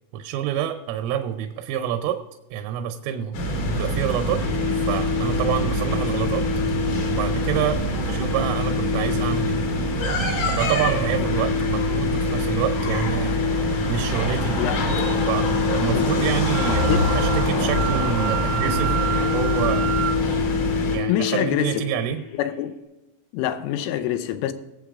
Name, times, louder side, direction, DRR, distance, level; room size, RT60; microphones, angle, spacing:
voice 1, 0.1-2.2 2.5-4.4 4.9-6.5 7.1-9.6 10.6-13.4 13.9-14.6 15.3-19.9 20.9-22.2, right 9 dB, 85° right, 3.3 m, -27 dB
sound 1, 3.3-21.0, equal, 40° left, 3.7 m, -25 dB
sound 2, 4.4-22.7, left 7 dB, 55° left, 3.0 m, -28 dB
voice 2, 14.6-15.0 15.9-16.3 16.7-17.1 21.1-21.8 22.3-22.7 23.3-24.5, left 11 dB, 85° left, 3.2 m, -26 dB
Wind instrument woodwind instrument, 16.4-20.2, right 12 dB, 70° right, 2.1 m, -29 dB
21.5 x 8.0 x 2.5 m
omnidirectional pair, 5.7 m